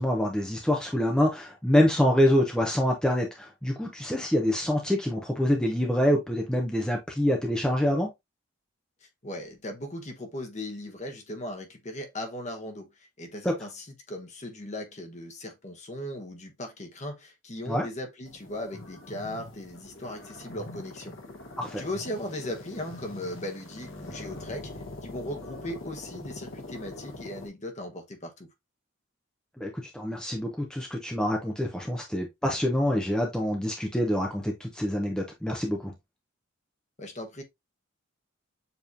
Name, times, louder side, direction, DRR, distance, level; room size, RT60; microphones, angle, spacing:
voice 1, 0.0-8.1 13.4-13.5 17.7-17.9 21.6-21.8 29.6-35.9, equal, 5° left, 0.6 m, -26 dB
voice 2, 9.0-21.1 21.8-24.7 25.0-28.5 37.0-37.4, left 1 dB, 35° left, 1.1 m, -38 dB
sound 1, 18.3-27.5, left 2 dB, 75° left, 1.1 m, -43 dB
6.9 x 3.0 x 2.5 m
head